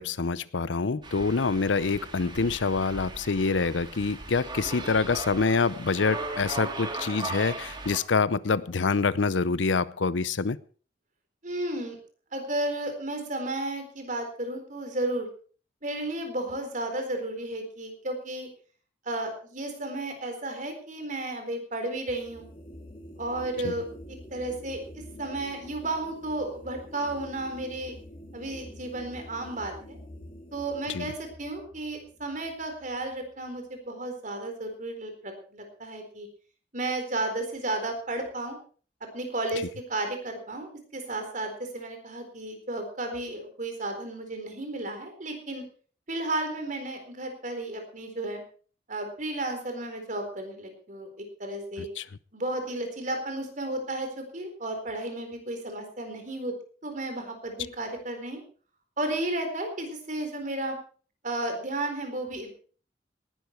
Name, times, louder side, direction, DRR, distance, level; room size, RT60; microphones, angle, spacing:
voice 1, 0.0-10.6 23.6-23.7 30.9-31.1 52.0-52.1, left 4 dB, 90° left, 18 dB, 0.7 m, -26 dB
sound 1, 1.0-8.0, right 3 dB, 25° right, 2.0 m, -38 dB
voice 2, 11.4-12.0 12.3-15.3 15.8-18.5 19.1-22.5 23.2-24.8 25.2-28.0 28.3-30.0 30.5-36.3 36.7-38.6 39.1-45.6 46.1-48.4 48.9-51.9 52.3-56.5 56.8-58.4 59.0-60.8 61.2-62.5, right 2 dB, 45° right, 5 dB, 4.1 m, -33 dB
sound 2, 22.1-33.5, equal, 30° left, 2.1 m, -47 dB
18.5 x 12.0 x 4.5 m, 0.42 s
head